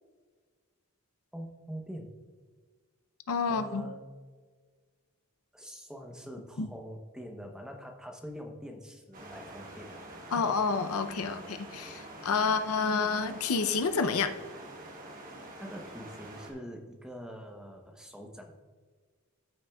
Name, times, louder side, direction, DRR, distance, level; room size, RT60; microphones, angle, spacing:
voice 1, 1.3-2.1 3.4-4.0 5.5-10.5 15.6-18.5, equal, 5° right, 2 dB, 0.8 m, -44 dB
voice 2, 3.3-3.9 6.6-6.7 10.3-14.3, left 5 dB, 75° left, 8 dB, 0.6 m, -29 dB
sound 1, 9.1-16.5, right 1 dB, 40° right, 1.6 m, -46 dB
13.5 x 6.2 x 2.3 m, 1.5 s
head